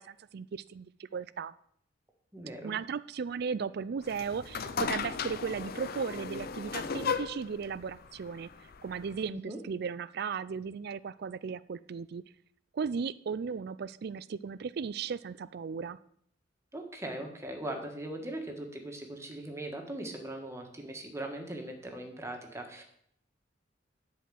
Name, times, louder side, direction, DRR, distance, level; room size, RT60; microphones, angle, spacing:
voice 1, 0.0-1.5 2.6-8.5 8.8-12.2 12.7-16.0, right 6 dB, 60° right, 17 dB, 0.4 m, -36 dB
voice 2, 2.3-2.7 9.3-9.6 16.7-22.8, right 1 dB, 15° right, 2 dB, 1.6 m, -40 dB
sound 1, 4.0-9.3, left 6 dB, 55° left, 0.6 m, -36 dB
11.0 x 4.8 x 7.6 m, 0.69 s
head